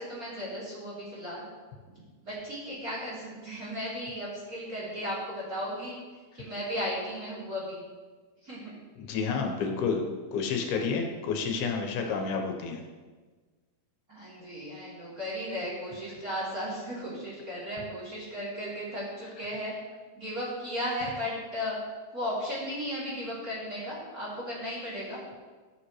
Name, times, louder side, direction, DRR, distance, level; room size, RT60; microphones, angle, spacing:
voice 1, 0.0-1.4 2.2-6.0 6.3-7.8 8.4-8.7 14.1-19.7 20.1-21.8 22.1-25.2, equal, 25° right, -8 dB, 3.2 m, -35 dB
voice 2, 9.0-10.1 10.3-12.8, left 5 dB, 80° left, 3 dB, 3.0 m, -30 dB
16.0 x 6.1 x 3.2 m, 1.4 s
omnidirectional pair, 4.4 m